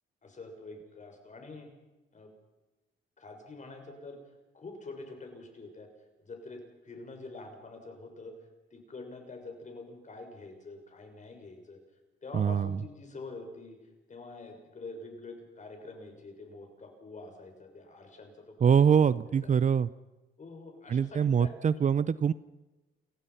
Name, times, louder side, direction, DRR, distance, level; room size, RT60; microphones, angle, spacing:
voice 1, 0.2-1.7 2.1-2.3 3.2-4.2 4.5-5.9 6.2-8.3 8.7-11.8 12.2-13.8 14.1-18.7 19.4-19.5 20.4-21.5, left 3 dB, 40° left, 4 dB, 6.4 m, -46 dB
voice 2, 12.3-12.8 18.6-19.9 20.9-22.3, right 7 dB, 40° right, 17 dB, 0.6 m, -24 dB
29.5 x 15.5 x 5.8 m, 1.1 s
cardioid pair, 90°, 20 cm